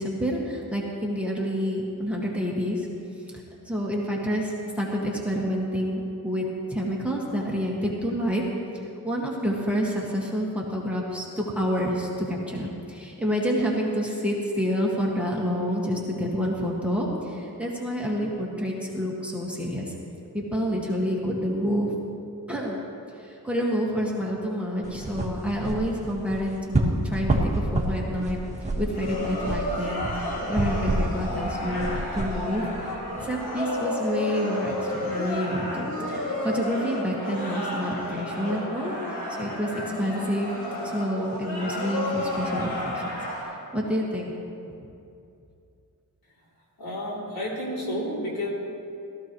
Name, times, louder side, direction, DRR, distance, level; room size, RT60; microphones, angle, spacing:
voice 1, 0.0-2.9 3.7-8.4 9.0-19.9 20.3-21.9 22.5-22.8 23.2-28.4 28.8-32.7 33.2-38.9 39.3-40.5 40.8-43.1 43.5-44.4, equal, 5° right, -4 dB, 1.8 m, -28 dB
voice 2, 18.1-18.4 46.8-48.5, left 1 dB, 70° left, -5 dB, 3.3 m, -31 dB
sound 1, 24.8-33.3, right 1 dB, 20° right, 1.5 m, -29 dB
sound 2, 28.9-43.4, left 1 dB, 90° left, 3.8 m, -31 dB
17.0 x 14.0 x 3.1 m, 2.6 s
wide cardioid pair, 125°, 37 cm